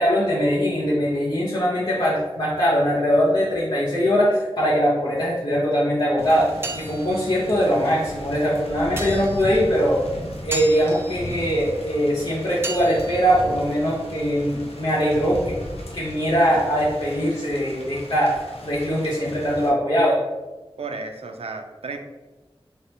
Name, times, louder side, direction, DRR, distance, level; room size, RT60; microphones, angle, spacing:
voice 1, 0.0-10.1 10.4-15.6 15.9-20.2, equal, 55° left, -8 dB, 0.8 m, -21 dB
Thunder / Rain, 6.2-19.7, left 1 dB, 85° left, 0.5 m, -37 dB
sound 1, 6.2-14.8, right 2 dB, 25° right, 0.5 m, -38 dB
voice 2, 20.8-22.0, right 4 dB, 80° right, 5 dB, 0.4 m, -33 dB
3.0 x 2.8 x 3.2 m, 1.2 s
wide cardioid pair, 45°, 10 cm